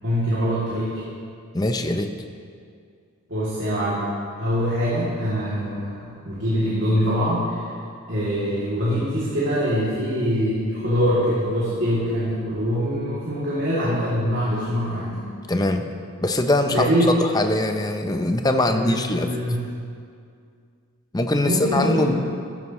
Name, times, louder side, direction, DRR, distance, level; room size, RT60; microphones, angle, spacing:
voice 1, 0.0-1.0 3.3-4.1 4.4-7.6 8.1-15.2 16.7-17.2 18.7-19.6 21.4-22.2, equal, 55° right, -10 dB, 2.8 m, -23 dB
voice 2, 1.5-2.1 15.5-15.9 16.2-16.9 17.2-19.3 21.1-22.3, left 1 dB, 15° left, 6 dB, 0.6 m, -22 dB
14.5 x 13.5 x 3.1 m, 2.3 s
head